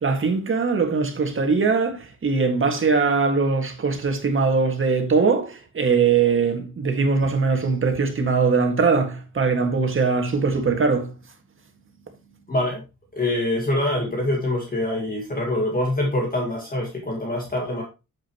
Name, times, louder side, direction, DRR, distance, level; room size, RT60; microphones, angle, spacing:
voice 1, 0.0-11.1, right 4 dB, 40° right, 1.9 m, -21 dB
voice 2, 12.5-12.8 13.1-17.8, left 1 dB, 30° left, 1.9 m, -25 dB
8.8 x 7.7 x 3.0 m
wide cardioid pair, 145°, 31 cm